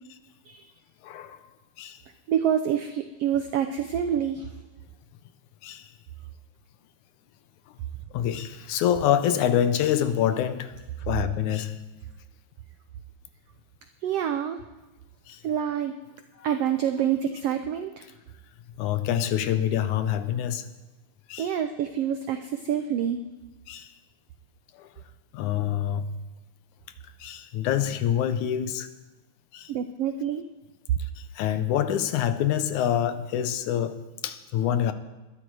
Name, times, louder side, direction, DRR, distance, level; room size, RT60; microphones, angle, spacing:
voice 1, 1.0-1.4 1.8-2.0 5.6-5.9 8.1-11.8 15.3-15.4 16.4-16.5 18.8-20.7 21.3-21.5 23.7-24.0 24.7-25.0 25.3-26.2 27.2-28.9 29.5-29.7 31.0-34.9, left 10 dB, 75° left, 2.1 m, -26 dB
voice 2, 2.3-4.5 14.0-14.6 15.4-16.0 16.4-18.1 21.4-23.2 29.7-30.5, right 9 dB, 90° right, 1.3 m, -27 dB
21.0 x 12.0 x 4.8 m
omnidirectional pair, 3.7 m